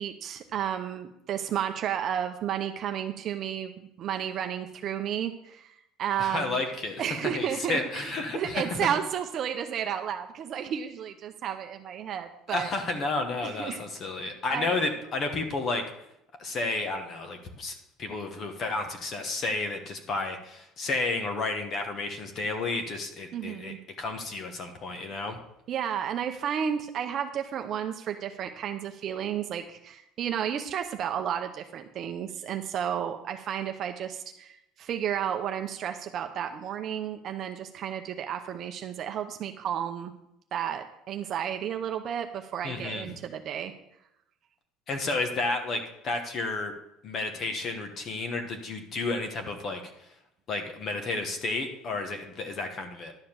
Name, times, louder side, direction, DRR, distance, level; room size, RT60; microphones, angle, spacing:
voice 1, 0.0-5.7 6.0-6.6 7.0-12.7 13.4-13.8 14.5-14.7 23.3-23.8 25.7-40.1 40.5-43.7, right 9 dB, 40° right, 6 dB, 0.6 m, -32 dB
voice 2, 6.2-7.0 7.3-8.8 12.5-15.8 16.4-25.4 42.6-43.1 44.9-46.7 47.0-49.8 50.5-53.1, left 3 dB, 35° left, 5 dB, 1.2 m, -31 dB
11.5 x 5.0 x 7.3 m, 0.81 s
cardioid pair, 150°, 0 cm